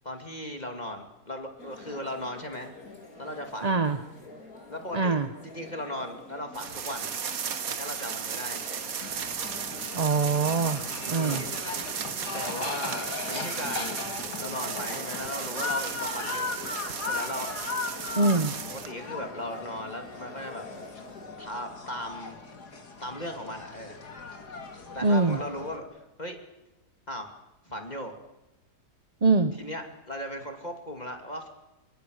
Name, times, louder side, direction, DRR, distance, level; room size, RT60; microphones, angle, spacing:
voice 1, 0.0-2.7 3.2-3.8 4.7-5.2 5.4-7.1 7.7-8.9 11.1-11.5 12.3-14.0 14.4-16.6 17.0-17.5 18.7-20.6 21.4-22.4 23.0-24.0 24.9-26.4 27.1-27.3 27.7-28.1 29.6-31.5, left 1 dB, 25° left, 4 dB, 2.7 m, -37 dB
sound 1, 1.6-21.3, left 3 dB, 60° left, 4.2 m, -46 dB
voice 2, 3.6-4.0 4.9-5.3 9.9-11.4 18.2-18.5 25.0-25.4 29.2-29.5, right 3 dB, 30° right, 10 dB, 0.8 m, -23 dB
sound 2, 6.5-18.9, right 7 dB, 60° right, 1.7 m, -35 dB
sound 3, 9.0-25.8, left 4 dB, 75° left, 3.1 m, -38 dB
27.0 x 23.5 x 6.6 m, 0.98 s
omnidirectional pair, 1.7 m